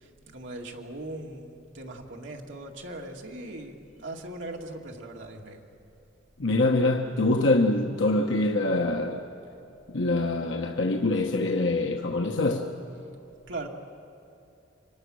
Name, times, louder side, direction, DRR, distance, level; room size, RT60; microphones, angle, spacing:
voice 1, 0.0-3.8 4.0-5.6 13.5-13.7, right 2 dB, 80° right, 2.2 m, -39 dB
voice 2, 6.4-9.3 9.9-12.7, left 2 dB, 85° left, 1.2 m, -24 dB
29.5 x 25.0 x 6.4 m
head